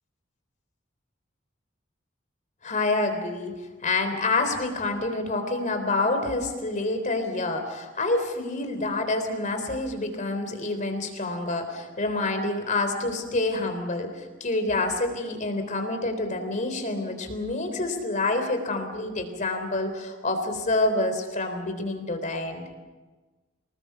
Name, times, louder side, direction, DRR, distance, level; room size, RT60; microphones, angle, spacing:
voice 1, 2.6-3.5 3.8-22.6, left 2 dB, 40° left, 6 dB, 3.7 m, -27 dB
26.5 x 20.0 x 7.1 m, 1.2 s
head